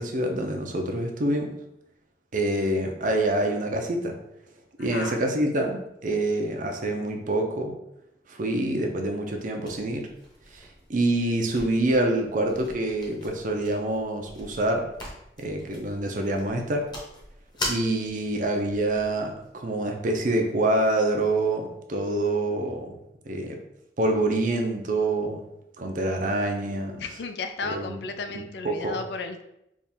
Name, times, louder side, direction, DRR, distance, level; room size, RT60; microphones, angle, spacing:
voice 1, 0.0-1.5 2.3-4.2 4.8-7.8 8.3-10.1 10.5-14.9 15.4-16.9 17.6-23.0 23.3-23.6 24.0-25.5 25.8-27.0 27.6-28.0 28.3-29.0, right 1 dB, 45° right, 3 dB, 0.6 m, -26 dB
voice 2, 4.8-5.2 27.0-29.4, left 4 dB, 65° left, 7 dB, 0.4 m, -34 dB
sound 1, 9.6-19.5, left 1 dB, 25° left, 1.0 m, -41 dB
3.5 x 2.4 x 4.3 m, 0.83 s
head